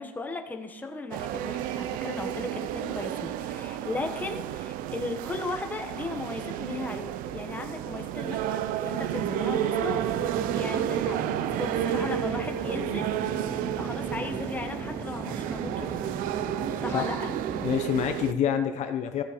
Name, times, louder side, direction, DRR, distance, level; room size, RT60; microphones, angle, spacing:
voice 1, 0.0-10.0 10.5-13.1 13.6-16.0 16.8-17.3, left 3 dB, 10° left, 3 dB, 1.3 m, -36 dB
sound 1, 1.1-18.3, right 11 dB, 70° right, 0.6 m, -31 dB
Conversation / Chatter / Fixed-wing aircraft airplane, 9.8-17.8, right 3 dB, 15° right, 0.7 m, -38 dB
voice 2, 17.6-19.2, left 9 dB, 50° left, 7 dB, 1.0 m, -27 dB
14.5 x 7.3 x 5.2 m, 1.2 s
cardioid pair, 140°, 15 cm